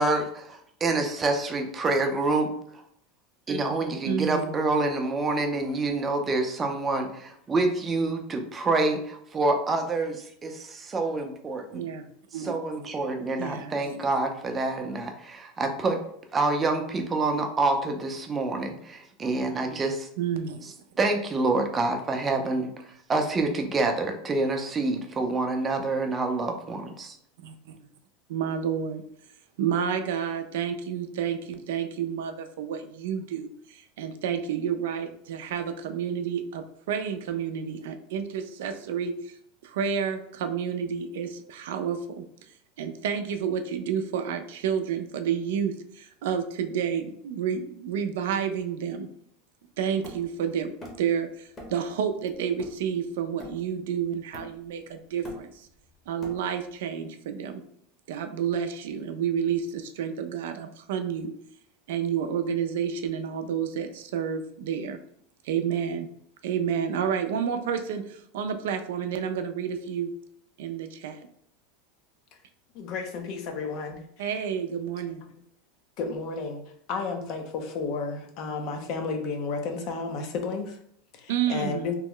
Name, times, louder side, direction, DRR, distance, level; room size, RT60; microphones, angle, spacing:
voice 1, 0.0-2.5 3.5-11.8 12.4-16.0 16.3-20.1 21.0-27.1, right 2 dB, 20° right, 4 dB, 0.5 m, -27 dB
voice 2, 4.0-4.7 11.7-12.0 12.3-12.5 13.4-14.0 20.2-20.7 27.4-27.8 28.3-29.0 29.6-39.3 39.6-42.2 42.8-49.1 49.8-50.7 51.0-55.7 56.1-57.6 58.1-61.3 61.9-65.0 65.4-66.1 66.4-70.1 70.6-71.2 74.2-75.2 81.3-81.9, right 8 dB, 85° right, 7 dB, 0.4 m, -30 dB
Hammer, 50.0-51.2 51.6-51.9 52.3-53.9 54.3-54.8 55.1-56.7, equal, 20° left, 0.9 m, -45 dB
voice 3, 72.7-74.0 76.0-76.6 76.9-80.8 81.1-81.9, left 4 dB, 50° left, 6 dB, 0.5 m, -32 dB
3.0 x 2.1 x 3.7 m, 0.69 s
supercardioid pair, 145°, 0 cm